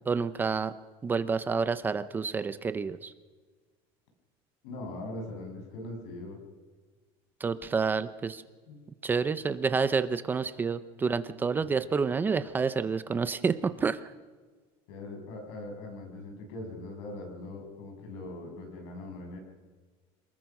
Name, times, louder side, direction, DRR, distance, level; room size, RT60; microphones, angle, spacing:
voice 1, 0.1-0.7 1.0-3.1 7.4-8.4 9.0-14.1, right 5 dB, 15° right, 12 dB, 0.6 m, -29 dB
voice 2, 4.6-6.4 8.7-8.8 11.5-11.9 14.9-19.4, left 2 dB, 80° left, 3 dB, 7.0 m, -41 dB
27.0 x 20.5 x 6.0 m, 1.4 s
cardioid pair, 175°, 12 cm